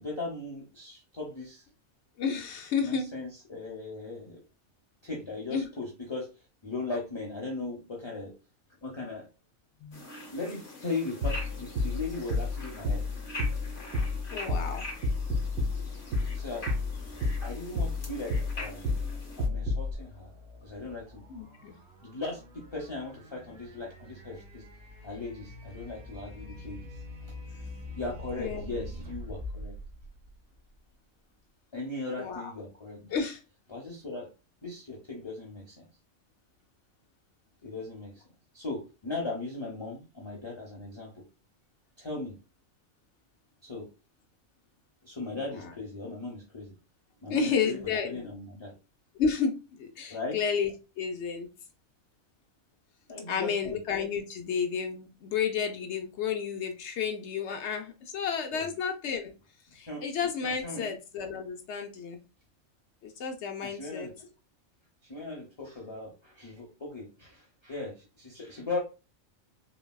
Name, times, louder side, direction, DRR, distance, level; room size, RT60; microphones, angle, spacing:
voice 1, 0.0-1.6 2.8-4.4 5.0-6.3 6.6-8.3 8.8-9.3 10.3-13.2 16.3-16.7 17.4-18.8 19.4-20.3 20.6-21.2 22.0-24.6 25.0-26.9 28.0-29.7 31.7-33.2 33.7-34.3 34.6-35.8 37.6-38.1 38.5-41.1 42.0-42.3 43.6-43.9 45.0-46.7 47.2-48.7 50.1-50.4 53.1-53.8 58.5-58.7 59.9-60.0 60.6-60.9 63.6-64.1 65.0-68.8, left 3 dB, 25° left, -3 dB, 0.6 m, -38 dB
voice 2, 2.2-3.1 5.5-5.7 9.8-10.0 14.3-14.8 21.3-21.7 28.4-28.9 32.2-32.5 33.1-33.4 45.3-45.7 47.3-48.3 49.2-50.7 51.0-51.5 53.3-59.3 59.7-62.2 63.0-64.1, left 6 dB, 65° left, 4 dB, 0.8 m, -31 dB
sound 1, 9.9-19.5, left 1 dB, 45° left, 1.0 m, -44 dB
sound 2, 11.2-19.9, left 2 dB, 80° right, 1.3 m, -31 dB
sound 3, 15.7-30.9, left 1 dB, 65° right, 1.6 m, -46 dB
3.9 x 2.2 x 2.2 m, 0.29 s
omnidirectional pair, 1.4 m